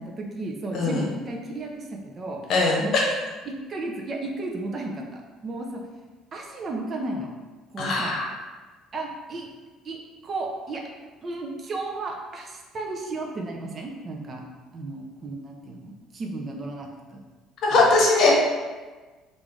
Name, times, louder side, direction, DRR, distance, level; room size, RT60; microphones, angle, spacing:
voice 1, 0.0-2.4 2.8-3.0 3.5-5.8 6.3-7.3 7.7-8.1 8.9-9.5 9.8-10.0 10.2-10.8 11.2-14.4 14.7-17.2 17.7-17.9, right 2 dB, 35° right, 0 dB, 0.5 m, -33 dB
voice 2, 0.7-1.0 2.5-2.8 7.8-8.2 17.6-18.4, left 3 dB, 55° left, -2 dB, 0.9 m, -20 dB
3.2 x 2.5 x 3.6 m, 1.3 s
cardioid pair, 115°, 0 cm